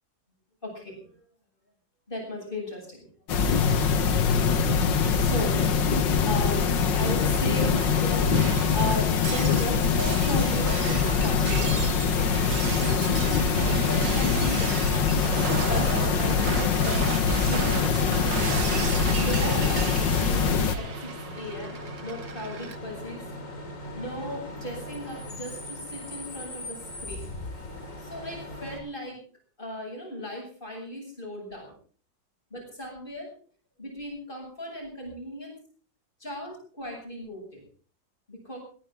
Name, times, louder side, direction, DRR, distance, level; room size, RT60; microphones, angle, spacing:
voice 1, 0.6-1.1 2.1-3.1 4.8-8.3 8.7-11.7 12.1-12.3 12.8-14.8 15.6-17.9 18.6-18.8 19.2-23.2 23.9-27.3 28.0-29.2 29.6-31.7 32.5-33.3 33.8-35.6 36.2-37.6 38.3-38.6, equal, 25° left, 1 dB, 8.3 m, -36 dB
sound 1, 3.3-20.8, left 6 dB, 80° left, 2.1 m, -23 dB
Shatter, 7.2-22.8, right 8 dB, 75° right, 1.9 m, -35 dB
Bus / Idling / Screech, 20.8-28.8, left 1 dB, 45° left, 3.7 m, -39 dB
20.0 x 17.5 x 3.8 m, 0.42 s
omnidirectional pair, 2.0 m